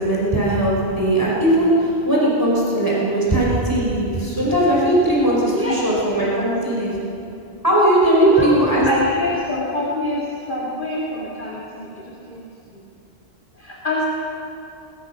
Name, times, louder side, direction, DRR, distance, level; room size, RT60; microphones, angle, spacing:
voice 1, 0.0-7.0 7.6-8.9, right 1 dB, 20° right, -6 dB, 5.0 m, -19 dB
voice 2, 8.1-8.5 8.8-12.8 13.6-14.0, equal, 50° left, -5 dB, 2.6 m, -24 dB
22.0 x 20.0 x 6.0 m, 2.9 s
omnidirectional pair, 1.1 m